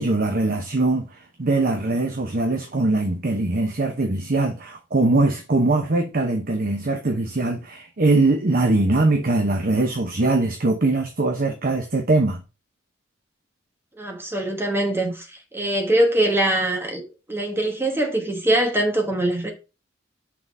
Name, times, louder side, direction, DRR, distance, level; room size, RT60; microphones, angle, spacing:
voice 1, 0.0-12.4, right 2 dB, 45° right, 0.8 m, -22 dB
voice 2, 14.0-17.0 17.3-19.5, right 1 dB, 10° right, 1.1 m, -22 dB
6.0 x 3.9 x 4.6 m
head